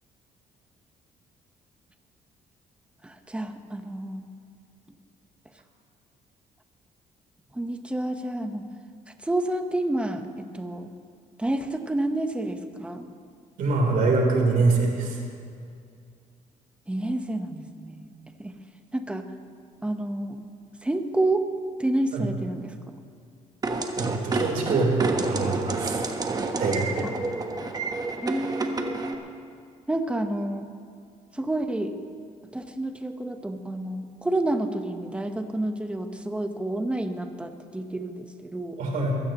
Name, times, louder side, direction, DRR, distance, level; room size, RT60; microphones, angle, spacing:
voice 1, 3.0-4.2 7.5-8.7 9.2-10.9 11.4-13.1 16.9-18.1 18.4-18.5 18.9-19.3 19.8-20.4 20.8-21.5 21.8-22.7 27.0-27.1 28.2-29.2 29.9-30.7 31.3-31.9 32.5-38.8, right 1 dB, 10° right, 6 dB, 1.0 m, -29 dB
voice 2, 13.6-15.2 22.1-22.3 23.9-26.0 26.6-27.1 38.8-39.1, right 3 dB, 70° right, 0 dB, 3.4 m, -24 dB
sound 1, 23.6-29.1, right 3 dB, 25° right, 1.2 m, -29 dB
22.0 x 16.0 x 3.0 m, 2.3 s
cardioid pair, 110°, 14 cm